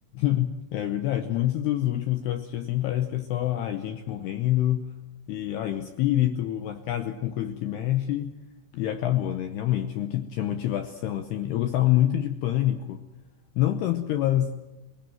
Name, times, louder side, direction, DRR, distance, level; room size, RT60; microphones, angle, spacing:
voice 1, 0.1-4.8 5.3-8.4 8.7-13.0 13.6-14.5, left 13 dB, 80° left, 8 dB, 2.4 m, -26 dB
24.0 x 19.5 x 7.7 m, 1.0 s
omnidirectional pair, 5.8 m